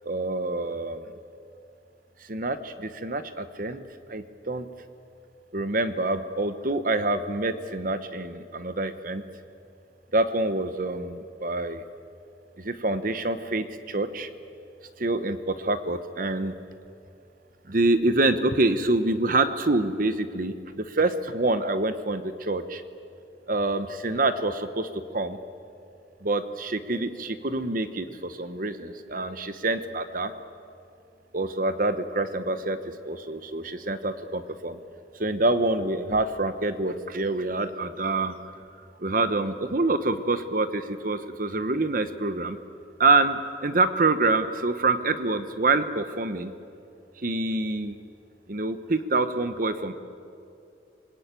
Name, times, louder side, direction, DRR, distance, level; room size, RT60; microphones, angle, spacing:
voice 1, 0.0-1.0 2.3-3.8 4.1-4.7 5.5-9.2 10.1-11.8 12.6-14.3 15.0-16.5 17.7-22.8 23.5-24.9 25.1-25.4 26.2-30.3 31.3-34.8 35.2-38.3 39.0-42.6 43.0-46.5 47.2-48.0 48.5-49.9, right 2 dB, 45° right, 10 dB, 1.0 m, -26 dB
27.5 x 21.0 x 9.1 m, 2.6 s
head